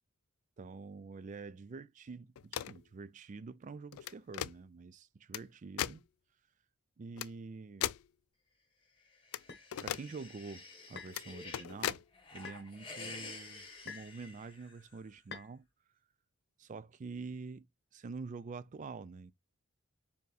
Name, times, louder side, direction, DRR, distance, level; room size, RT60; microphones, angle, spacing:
voice 1, 0.6-6.1 7.0-7.9 9.8-12.0 12.3-15.7 16.6-17.7 17.9-19.3, right 4 dB, 35° right, 0.3 m, -46 dB
sound 1, 2.4-2.8 3.9-4.5 5.3-5.4 5.8-6.0 7.2-7.3 7.8-8.1 9.3-9.4 9.7-10.0 11.1-11.2 11.5-12.0, left 11 dB, 70° left, 0.3 m, -37 dB
sound 2, 9.0-11.7 12.1-15.0, left 3 dB, 25° left, 1.5 m, -50 dB
sound 3, 9.5-9.7 11.0-11.2 12.4-12.7 13.9-14.2 15.3-15.5, left 5 dB, 50° left, 1.1 m, -47 dB
4.6 x 3.5 x 3.3 m
head